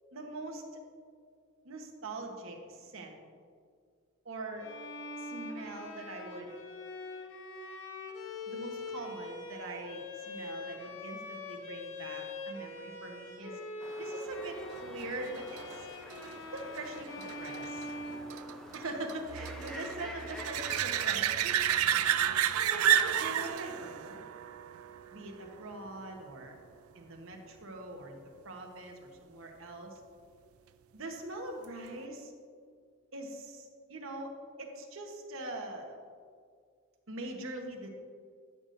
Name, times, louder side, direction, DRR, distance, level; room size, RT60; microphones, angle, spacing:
voice 1, 0.1-0.6 1.6-3.2 4.2-4.7 5.2-6.5 8.5-13.6 14.0-15.6 16.5-17.9 18.7-21.6 22.5-24.2 25.1-26.6 26.9-28.2 28.4-30.0 30.9-32.3 33.1-34.3 34.6-36.0 37.1-37.9, right 2 dB, 70° right, 2 dB, 1.1 m, -42 dB
Bowed string instrument, 4.6-18.9, left 2 dB, 60° left, 0.8 m, -43 dB
sound 1, 13.8-21.2, equal, ahead, 0.5 m, -49 dB
sound 2, 14.7-26.0 31.6-31.7, right 10 dB, 85° right, 0.4 m, -32 dB
11.5 x 6.8 x 2.6 m, 2.1 s
head